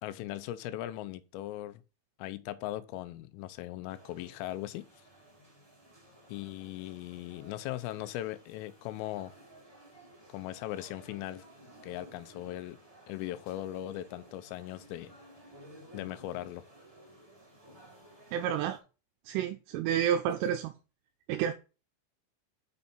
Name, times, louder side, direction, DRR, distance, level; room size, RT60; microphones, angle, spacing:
voice 1, 0.0-1.8 2.2-4.9 6.3-9.3 10.3-11.4 11.8-12.8 13.1-15.1 15.9-16.6, left 14 dB, 85° left, 3.2 m, -39 dB
sound 1, 3.9-18.8, equal, 15° right, 0.9 m, -56 dB
voice 2, 18.3-18.8 19.3-20.7 21.3-21.5, right 9 dB, 80° right, 3.1 m, -30 dB
6.9 x 6.2 x 4.1 m
omnidirectional pair, 5.9 m